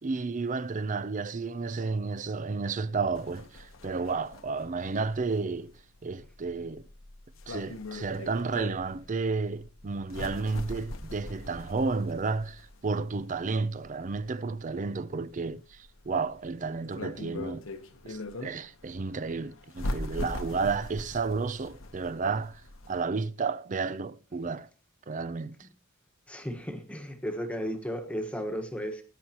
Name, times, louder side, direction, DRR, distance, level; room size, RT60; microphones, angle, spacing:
voice 1, 0.0-5.7 6.0-6.8 7.5-17.6 18.1-22.6 22.9-24.7 25.1-25.6, right 4 dB, 40° right, 0.5 m, -32 dB
sound 1, 3.1-23.0, left 2 dB, 70° left, 1.1 m, -41 dB
voice 2, 26.3-29.0, equal, 5° left, 1.4 m, -34 dB
18.5 x 9.5 x 3.0 m
head